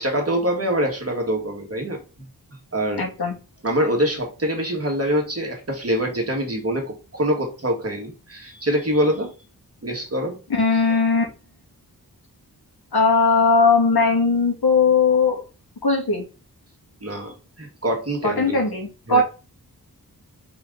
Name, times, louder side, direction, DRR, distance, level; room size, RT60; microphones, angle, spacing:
voice 1, 0.0-2.3 2.7-3.1 3.6-9.3 9.8-10.4 17.0-18.6 19.1-19.2, equal, 40° right, 2 dB, 2.1 m, -24 dB
voice 2, 3.0-3.3 10.5-11.2 12.9-15.4 15.8-16.2 18.2-19.2, left 4 dB, 80° left, -2 dB, 2.9 m, -18 dB
5.4 x 4.7 x 3.8 m, 0.32 s
wide cardioid pair, 95°, 37 cm